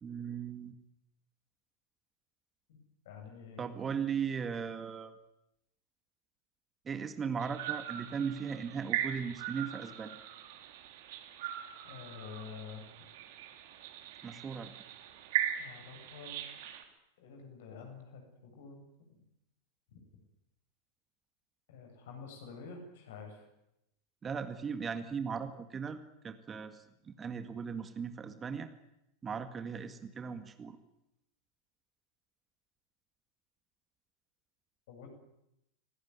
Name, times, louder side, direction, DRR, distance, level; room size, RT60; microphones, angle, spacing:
voice 1, 0.0-0.7 3.6-5.1 6.9-10.2 14.2-14.7 24.2-28.7 29.2-30.8, right 6 dB, 20° right, 9 dB, 2.0 m, -38 dB
voice 2, 3.0-3.7 11.9-13.1 15.6-16.4 17.2-18.8 19.9-20.0 21.7-23.4 34.9-35.1, left 5 dB, 55° left, 4 dB, 7.9 m, -48 dB
sound 1, 7.4-16.8, right 11 dB, 50° right, 3.4 m, -40 dB
26.5 x 18.5 x 9.6 m, 0.85 s
figure-of-eight pair, 90°, 0 cm